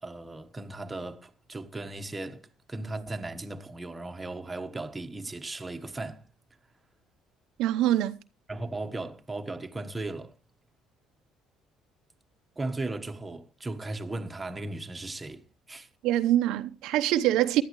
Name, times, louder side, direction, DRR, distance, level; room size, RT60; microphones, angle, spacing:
voice 1, 0.0-6.2 8.5-10.3 12.6-15.9, right 2 dB, 15° right, 1.3 m, -37 dB
voice 2, 7.6-8.2 16.0-17.6, right 13 dB, 75° right, 0.8 m, -24 dB
18.0 x 12.0 x 3.1 m
cardioid pair, 110°, 0 cm